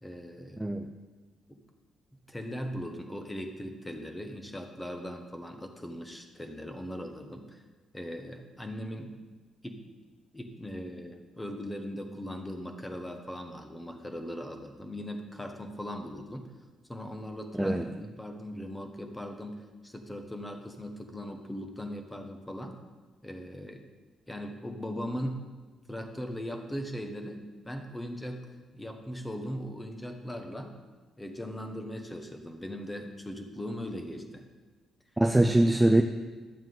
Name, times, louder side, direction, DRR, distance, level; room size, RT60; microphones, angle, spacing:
voice 1, 0.0-0.6 1.5-1.6 2.3-7.6 7.9-9.1 9.6-9.9 10.3-16.5 16.9-22.8 23.2-23.8 24.3-25.4 25.9-28.5 28.7-30.7 31.2-34.5 35.3-35.5, equal, 10° left, 5 dB, 1.1 m, -39 dB
voice 2, 0.6-0.9 17.5-17.9 35.2-36.0, right 1 dB, 5° right, 4 dB, 0.4 m, -23 dB
11.5 x 7.3 x 3.9 m, 1.3 s
cardioid pair, 105°, 0 cm